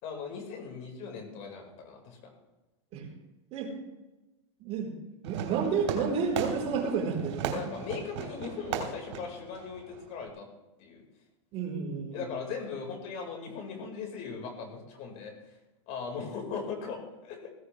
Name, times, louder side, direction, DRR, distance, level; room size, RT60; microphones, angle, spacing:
voice 1, 0.0-2.2 7.5-10.5 10.8-11.0 12.1-15.3 15.9-17.5, left 5 dB, 50° left, 2 dB, 4.7 m, -39 dB
voice 2, 4.6-4.9 5.2-7.6 11.5-12.2, right 5 dB, 40° right, 1 dB, 4.0 m, -31 dB
Fireworks, 5.2-10.3, right 8 dB, 65° right, 3.1 m, -37 dB
16.0 x 16.0 x 3.3 m, 1.0 s
hypercardioid pair, 115°, 16 cm